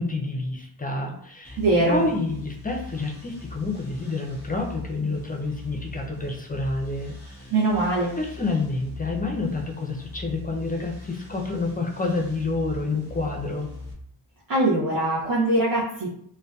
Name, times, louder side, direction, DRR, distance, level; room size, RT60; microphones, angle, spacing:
voice 1, 0.0-1.6 1.9-7.5 8.2-13.7, left 3 dB, 20° left, 0 dB, 0.4 m, -28 dB
sound 1, 1.4-13.9, left 3 dB, 35° right, 1.0 m, -41 dB
voice 2, 1.6-2.0 7.5-8.2 14.5-16.1, right 2 dB, 55° right, -8 dB, 0.7 m, -22 dB
2.6 x 2.2 x 2.3 m, 0.66 s
wide cardioid pair, 75°, 42 cm